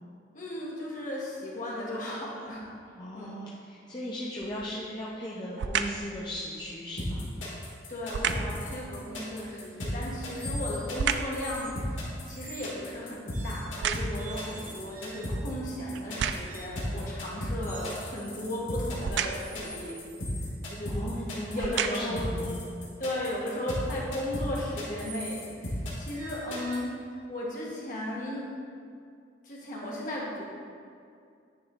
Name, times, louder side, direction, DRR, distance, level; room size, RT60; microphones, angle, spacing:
voice 1, 0.3-2.6 3.1-3.3 7.9-20.0 20.7-20.9 21.5-22.3 23.0-27.0 27.3-28.5 29.4-30.4, left 1 dB, 45° left, -5 dB, 1.3 m, -35 dB
voice 2, 3.0-7.3 20.9-22.6, equal, 25° left, -7 dB, 0.6 m, -37 dB
sound 1, 4.4-4.8 5.6-6.1 8.1-8.6 10.0-11.4 11.9-14.4 15.1-15.2 15.9-16.7 19.0-19.6 20.6-20.8 21.4-22.3 22.9-23.0, right 7 dB, 70° right, 0.3 m, -32 dB
sound 2, 7.0-26.8, left 1 dB, 85° left, 1.6 m, -35 dB
sound 3, 10.3-11.0 11.4-11.7 12.3-12.8 13.3-13.8 14.2-15.5 16.5-16.8 17.6-18.4 18.7-20.5 21.1-25.5 26.1-27.3, equal, 45° right, 1.4 m, -47 dB
9.4 x 3.6 x 3.7 m, 2.3 s
head